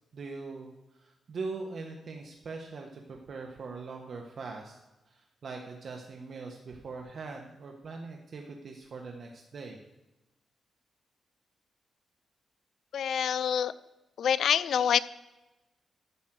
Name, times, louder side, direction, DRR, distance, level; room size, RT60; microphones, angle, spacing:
voice 1, 0.1-4.8 5.1-9.8, right 4 dB, 60° right, 2 dB, 1.4 m, -41 dB
voice 2, 12.9-13.7 14.2-15.0, left 8 dB, 80° left, 16 dB, 0.5 m, -26 dB
12.5 x 5.3 x 7.6 m, 1.0 s
cardioid pair, 95°, 0 cm